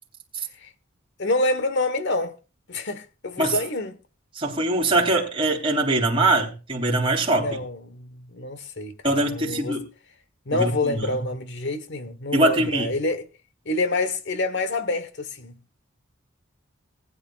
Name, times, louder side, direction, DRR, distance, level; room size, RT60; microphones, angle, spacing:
voice 1, 1.2-2.4 2.7-3.9 7.4-9.8 10.5-13.2 13.6-15.6, left 2 dB, 60° left, 1.3 m, -27 dB
voice 2, 4.3-7.6 9.0-9.8 10.5-11.2 12.3-12.9, right 2 dB, 25° right, 3.4 m, -22 dB
19.5 x 9.7 x 2.5 m
head